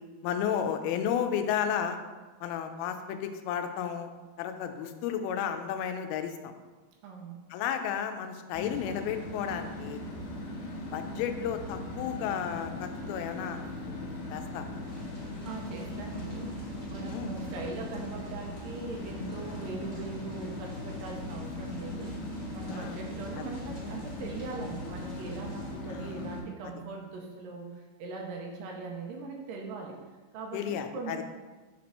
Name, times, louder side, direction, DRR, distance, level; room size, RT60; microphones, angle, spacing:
voice 1, 0.2-2.0 2.4-4.1 4.4-6.5 7.5-10.0 10.9-14.7 17.1-17.4 22.7-23.0 23.3-23.4 25.9-26.3 30.5-31.2, left 8 dB, 90° left, 7 dB, 2.5 m, -33 dB
voice 2, 7.0-7.4 15.4-16.5 16.9-22.2 22.5-27.7 28.0-30.0 30.3-31.2, right 4 dB, 75° right, 1 dB, 2.2 m, -40 dB
sound 1, 8.5-26.4, left 1 dB, 65° left, 2.5 m, -39 dB
sound 2, 14.8-25.7, equal, 50° right, 0.4 m, -50 dB
5.8 x 4.3 x 4.2 m, 1.3 s
omnidirectional pair, 4.3 m